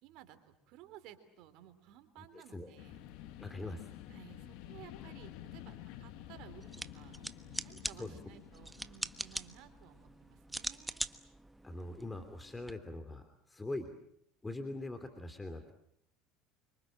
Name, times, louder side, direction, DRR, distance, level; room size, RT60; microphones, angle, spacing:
voice 1, 0.0-3.0 4.1-7.2 7.6-11.0, right 11 dB, 65° right, 10 dB, 3.5 m, -56 dB
voice 2, 2.2-2.7 3.4-3.9 8.0-8.2 11.6-13.9 14.4-15.7, left 2 dB, 15° left, 8 dB, 3.1 m, -42 dB
sound 1, 2.8-10.2, left 12 dB, 70° left, 1.9 m, -51 dB
sound 2, 6.6-12.7, right 1 dB, 5° right, 1.3 m, -43 dB
27.5 x 25.5 x 7.7 m, 0.69 s
hypercardioid pair, 85°, 0 cm